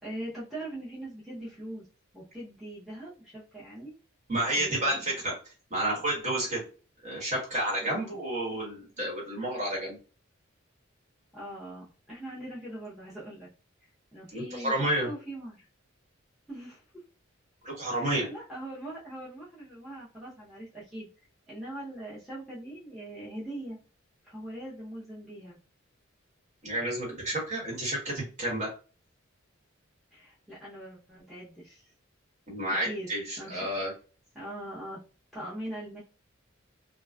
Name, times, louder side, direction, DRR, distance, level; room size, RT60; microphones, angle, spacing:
voice 1, 0.0-1.9 2.1-3.9 4.5-5.1 7.8-8.2 11.3-13.5 13.8-15.7 16.5-16.8 17.9-21.1 21.5-23.8 24.2-25.6 30.1-31.9 32.7-33.1 33.4-33.7 34.3-35.0 35.3-36.0, right 1 dB, ahead, -9 dB, 0.7 m, -41 dB
voice 2, 4.3-5.3 5.7-6.6 7.0-10.0 14.3-15.1 17.6-18.3 26.6-28.7 32.5-33.9, right 1 dB, 35° right, -4 dB, 1.2 m, -30 dB
2.4 x 2.2 x 2.3 m, 0.36 s
head